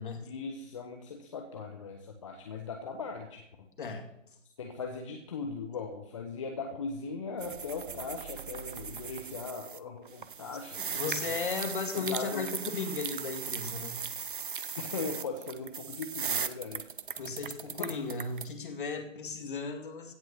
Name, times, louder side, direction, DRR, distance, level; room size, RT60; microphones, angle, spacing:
voice 1, 0.2-3.4 4.6-11.4 11.9-12.5 14.8-16.9 17.6-17.9, left 4 dB, 25° left, 3 dB, 0.9 m, -39 dB
sound 1, 7.4-9.8 10.1-18.5, right 6 dB, 40° right, 0.7 m, -38 dB
voice 2, 10.8-14.0 17.2-20.1, left 4 dB, 40° left, 6 dB, 2.0 m, -36 dB
16.0 x 6.1 x 6.5 m, 0.79 s
figure-of-eight pair, 145°, 38 cm